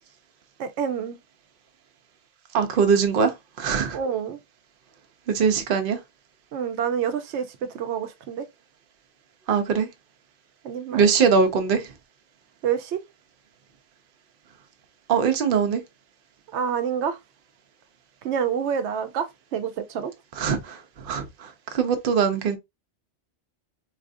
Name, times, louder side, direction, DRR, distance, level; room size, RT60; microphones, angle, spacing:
voice 1, 0.6-1.2 3.9-4.4 6.5-8.5 10.6-11.1 12.6-13.0 16.5-17.2 18.2-20.1, right 7 dB, 90° right, 0.9 m, -27 dB
voice 2, 2.5-4.0 5.3-6.0 9.5-9.9 10.9-11.9 15.1-15.8 20.3-22.6, right 6 dB, 60° right, 0.8 m, -22 dB
4.0 x 2.5 x 2.5 m
omnidirectional pair, 1.1 m